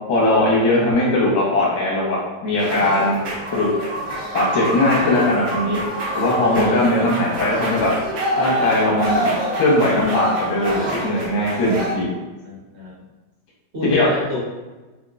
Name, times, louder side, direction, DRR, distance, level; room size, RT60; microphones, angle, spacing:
voice 1, 0.1-3.2 3.5-3.7 4.3-5.8 6.1-7.9 8.4-12.1 13.8-14.1, left 1 dB, 85° left, -5 dB, 1.8 m, -19 dB
sound 1, 2.6-11.9, right 1 dB, 80° right, 0.5 m, -26 dB
voice 2, 6.5-7.1 12.4-12.9 13.7-14.4, left 1 dB, 55° right, -5 dB, 0.8 m, -29 dB
4.5 x 2.1 x 2.4 m, 1.2 s
omnidirectional pair, 2.1 m